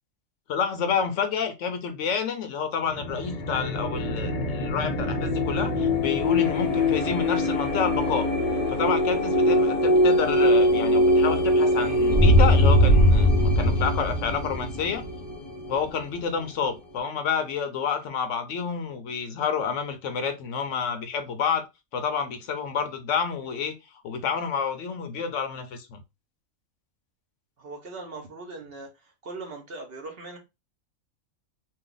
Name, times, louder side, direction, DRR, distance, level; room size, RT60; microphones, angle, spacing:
voice 1, 0.5-8.3 8.7-15.0 15.7-21.6 21.9-23.8 24.0-26.0, left 6 dB, 70° left, 0.9 m, -29 dB
sound 1, 2.9-16.4, left 1 dB, 35° left, 0.6 m, -22 dB
voice 2, 27.6-30.4, right 3 dB, 50° right, 0.9 m, -40 dB
2.6 x 2.2 x 3.7 m
omnidirectional pair, 1.4 m